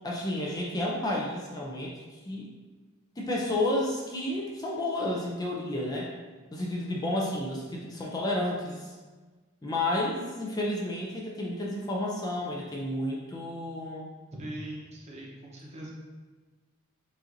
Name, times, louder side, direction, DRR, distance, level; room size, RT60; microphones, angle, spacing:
voice 1, 0.0-2.5 3.2-6.1 6.5-9.0 9.6-14.1, left 1 dB, 20° left, -3 dB, 0.4 m, -31 dB
voice 2, 14.3-15.9, right 1 dB, 30° right, -3 dB, 0.8 m, -40 dB
7.0 x 2.5 x 2.6 m, 1.3 s
head